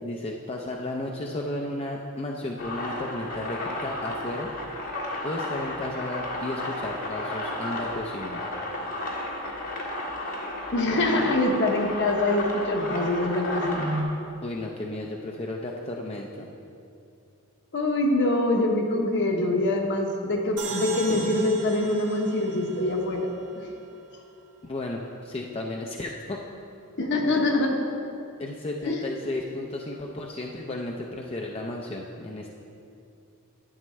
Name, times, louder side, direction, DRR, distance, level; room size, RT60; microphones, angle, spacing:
voice 1, 0.0-4.5 5.2-8.4 14.4-16.5 24.6-26.4 28.4-32.5, left 2 dB, 25° left, 0 dB, 0.4 m, -33 dB
sound 1, 2.6-14.0, left 1 dB, 75° left, 1.6 m, -33 dB
voice 2, 10.7-14.0 17.7-23.3 27.0-27.7 28.8-29.0, left 1 dB, 55° left, 2 dB, 1.0 m, -24 dB
sound 2, 20.6-23.9, right 3 dB, 80° right, 1.7 m, -39 dB
11.0 x 8.7 x 3.1 m, 2.7 s
head